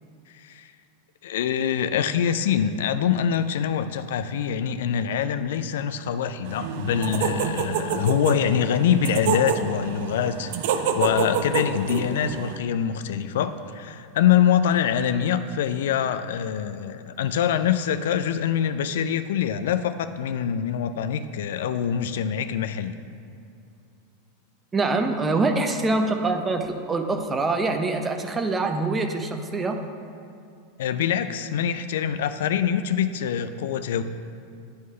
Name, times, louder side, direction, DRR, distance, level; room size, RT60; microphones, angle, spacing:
voice 1, 0.3-0.7 1.2-22.9 30.8-34.0, left 8 dB, 75° left, 10 dB, 0.3 m, -24 dB
sound 1, 6.5-12.6, right 6 dB, 65° right, 0.5 m, -28 dB
voice 2, 24.7-29.8, right 3 dB, 15° right, 5 dB, 0.6 m, -24 dB
9.5 x 3.2 x 5.5 m, 2.5 s
hypercardioid pair, 115°, 0 cm